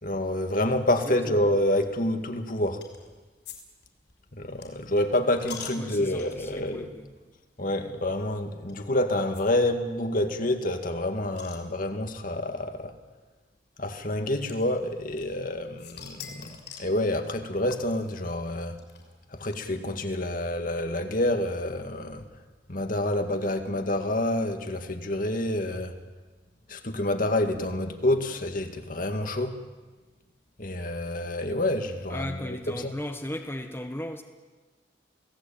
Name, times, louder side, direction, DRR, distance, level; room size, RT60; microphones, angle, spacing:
voice 1, 0.0-2.8 4.3-6.9 7.6-13.0 13.8-18.8 19.3-22.3 22.7-26.0 26.7-29.6 30.6-33.0, left 1 dB, 50° left, 6 dB, 2.1 m, -28 dB
voice 2, 1.0-1.4 5.8-7.1 32.1-34.2, left 1 dB, 15° left, 4 dB, 1.4 m, -36 dB
sound 1, 2.8-3.1 3.5-3.6 3.8-6.5 7.2-7.3 7.6-7.7 8.7-8.8 9.3-9.4 9.7-9.8 10.0-10.1 10.5-12.1 13.0-13.1 14.5-15.5 15.8-17.0 17.7-20.0, left 7 dB, 70° left, 6.0 m, -45 dB
28.5 x 18.0 x 8.9 m, 1.3 s
head